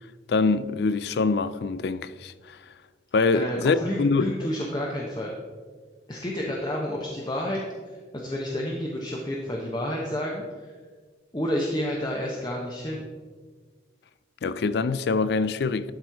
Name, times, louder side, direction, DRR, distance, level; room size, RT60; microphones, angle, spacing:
voice 1, 0.3-2.6 3.1-4.3 14.4-15.9, left 4 dB, 60° left, 0.4 m, -24 dB
voice 2, 3.3-5.3 6.1-7.6 7.9-10.7 11.3-13.0, equal, 25° left, 0.8 m, -30 dB
12.0 x 4.4 x 4.6 m
head